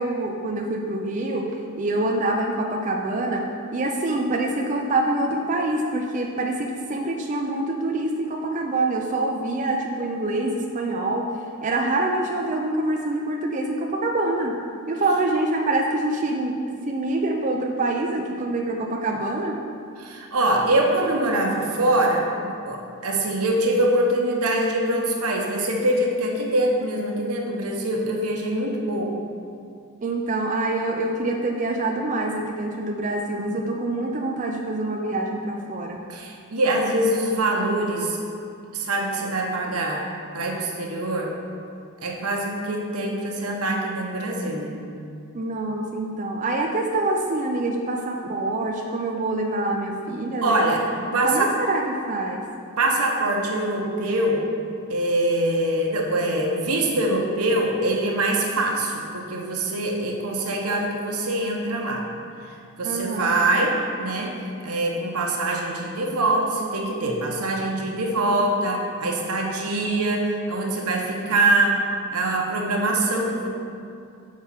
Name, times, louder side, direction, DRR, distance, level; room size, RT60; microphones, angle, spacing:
voice 1, 0.0-1.5 1.8-3.4 3.7-11.3 11.6-14.6 14.9-19.6 30.0-36.0 45.3-50.6 51.2-52.4 62.8-63.4, right 2 dB, 35° right, 0 dB, 0.5 m, -25 dB
voice 2, 20.0-29.1 36.1-38.2 38.7-40.0 40.3-41.3 42.0-44.8 50.4-50.8 51.1-51.4 52.8-54.4 54.9-62.0 62.8-64.3 64.6-71.8 72.1-73.5, right 1 dB, 80° right, 0 dB, 1.1 m, -24 dB
6.4 x 4.8 x 5.7 m, 2.4 s
head